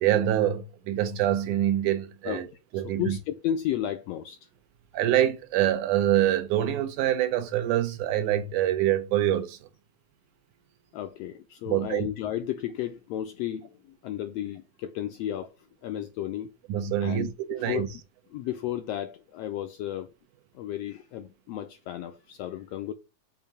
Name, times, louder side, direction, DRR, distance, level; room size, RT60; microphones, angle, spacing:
voice 1, 0.0-2.5 2.7-3.2 4.9-9.6 11.7-12.1 16.7-17.9, right 12 dB, 85° right, 2.4 m, -25 dB
voice 2, 2.7-4.5 10.9-16.5 17.0-17.9 18.3-20.1 20.5-22.9, left 11 dB, 85° left, 1.4 m, -33 dB
6.9 x 2.7 x 5.8 m
omnidirectional pair, 3.4 m